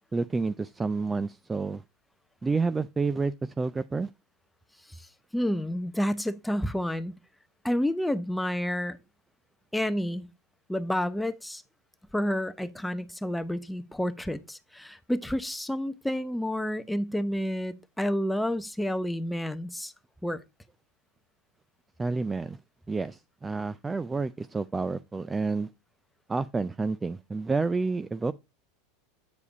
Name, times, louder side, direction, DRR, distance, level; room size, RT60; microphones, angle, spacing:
voice 1, 0.1-1.8 2.4-4.1 22.0-22.6 22.9-25.7 26.3-28.3, right 4 dB, 15° right, 0.3 m, -29 dB
voice 2, 4.9-7.1 7.6-9.0 9.7-10.3 10.7-11.6 12.1-19.9 20.2-20.4, equal, 5° left, 0.7 m, -30 dB
8.4 x 4.9 x 4.0 m
hypercardioid pair, 110°, 0 cm